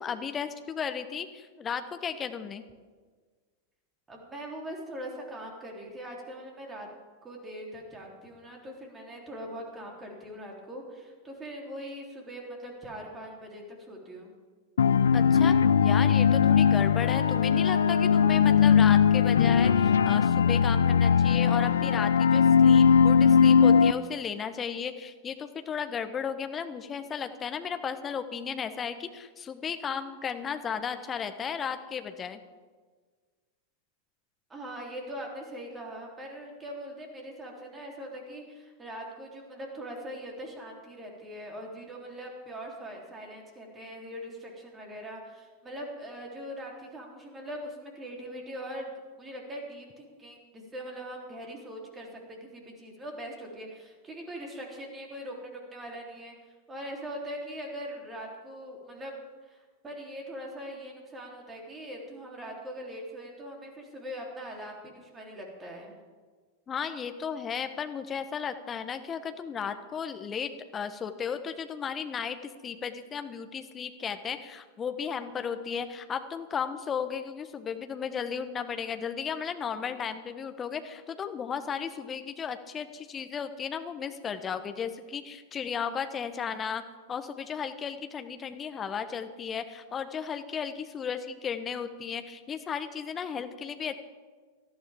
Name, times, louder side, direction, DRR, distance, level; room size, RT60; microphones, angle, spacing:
voice 1, 0.0-2.6 15.1-32.4 66.7-86.8 87.1-93.9, left 7 dB, 25° left, 9 dB, 1.1 m, -35 dB
voice 2, 4.1-6.9 7.2-14.4 34.5-59.1 59.4-66.0, equal, 15° right, 0 dB, 3.5 m, -41 dB
sound 1, 14.8-23.9, left 7 dB, 65° left, 0.4 m, -20 dB
18.5 x 13.5 x 3.7 m, 1.5 s
figure-of-eight pair, 90°, 0 cm